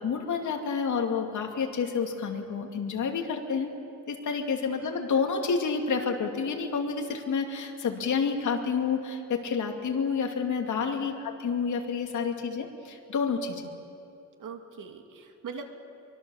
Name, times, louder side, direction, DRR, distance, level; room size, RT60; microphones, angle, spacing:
voice 1, 0.0-3.7 4.1-13.6, left 5 dB, 70° left, 3 dB, 2.7 m, -29 dB
voice 2, 10.8-11.1 14.4-15.6, right 6 dB, 85° right, 4 dB, 2.5 m, -42 dB
25.0 x 24.0 x 7.2 m, 2.6 s
wide cardioid pair, 165°, 31 cm